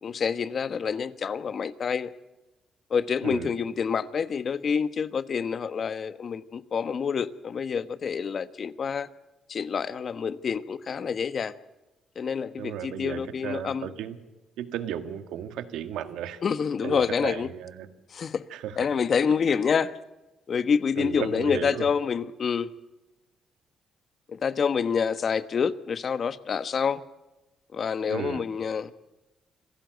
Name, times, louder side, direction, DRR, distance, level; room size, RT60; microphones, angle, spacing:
voice 1, 0.0-2.1 2.9-9.1 9.5-11.5 12.2-13.9 16.4-17.5 18.1-18.4 18.8-19.9 20.5-22.7 24.3-27.0 27.7-29.0, left 6 dB, 50° left, 13 dB, 1.2 m, -27 dB
voice 2, 3.2-3.6 12.6-14.2 14.6-16.4 16.8-17.9 18.5-18.9 20.9-21.9 28.1-28.4, right 10 dB, 90° right, 9 dB, 1.7 m, -35 dB
26.5 x 16.5 x 8.1 m, 1.1 s
cardioid pair, 90°, 0 cm